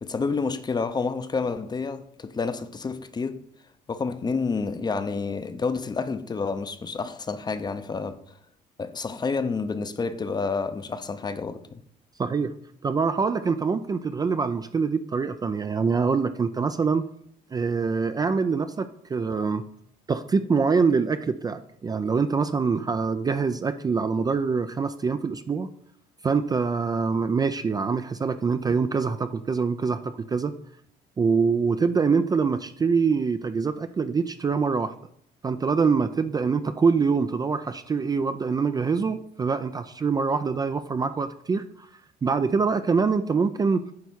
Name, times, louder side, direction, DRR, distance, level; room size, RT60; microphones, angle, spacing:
voice 1, 0.0-3.4 3.9-8.2 8.8-11.8, left 4 dB, 25° left, 0.6 m, -29 dB
voice 2, 12.2-17.0 17.5-19.6 20.1-25.7 26.2-30.5 31.2-34.9 35.4-41.7 42.2-43.9, right 5 dB, 25° right, 0.4 m, -24 dB
9.4 x 3.5 x 6.2 m
cardioid pair, 110°, 17 cm